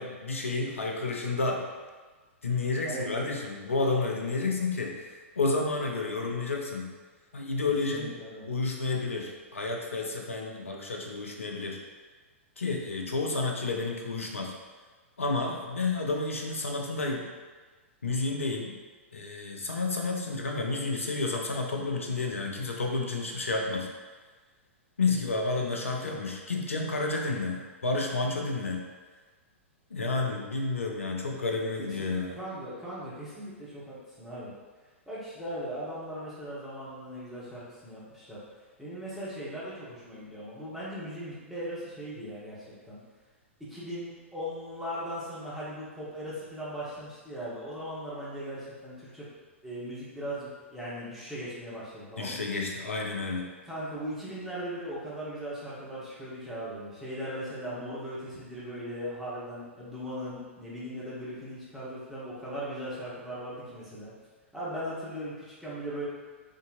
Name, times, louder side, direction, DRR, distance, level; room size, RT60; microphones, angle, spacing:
voice 1, 0.0-1.6 2.4-6.9 7.3-8.2 8.5-11.8 12.6-14.5 15.2-17.3 18.0-18.7 19.1-23.9 25.0-28.8 29.9-32.4 52.2-53.5, left 3 dB, 75° left, 1 dB, 0.5 m, -30 dB
voice 2, 2.8-3.2 7.9-8.5 25.6-26.1 31.8-34.5 35.1-38.4 38.8-43.0 43.6-49.3 49.6-52.4 53.6-64.1 64.5-66.1, equal, 5° right, -10 dB, 1.1 m, -38 dB
3.7 x 2.7 x 2.5 m, 1.4 s
figure-of-eight pair, 105°, 7 cm